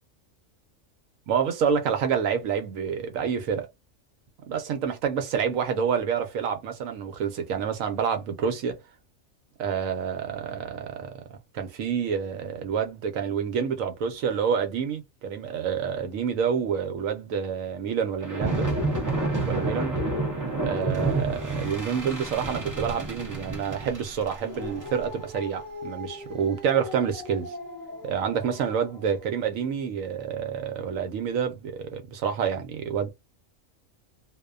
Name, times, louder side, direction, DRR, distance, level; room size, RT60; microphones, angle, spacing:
voice 1, 1.3-3.7 4.5-8.8 9.6-11.1 11.5-18.7 19.5-20.0 20.6-27.5 28.0-33.1, right 7 dB, 80° right, 1.0 m, -28 dB
sound 1, 18.2-28.8, right 2 dB, 20° right, 0.5 m, -31 dB
2.5 x 2.1 x 2.3 m
omnidirectional pair, 1.4 m